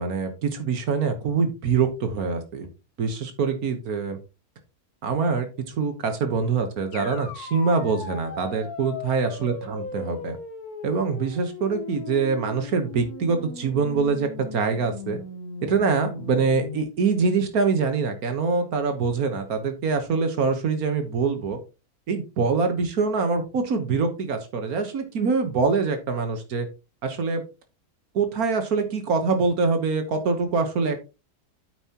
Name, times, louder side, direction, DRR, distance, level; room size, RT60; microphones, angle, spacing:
voice 1, 0.0-2.7 3.0-4.2 5.0-10.4 10.8-15.2 15.6-21.6 22.1-26.7 27.0-27.4 28.1-31.0, right 4 dB, 80° right, 7 dB, 1.7 m, -24 dB
sound 1, 6.9-16.8, left 4 dB, 90° left, 1.8 m, -38 dB
9.3 x 8.0 x 2.9 m, 0.29 s
omnidirectional pair, 1.5 m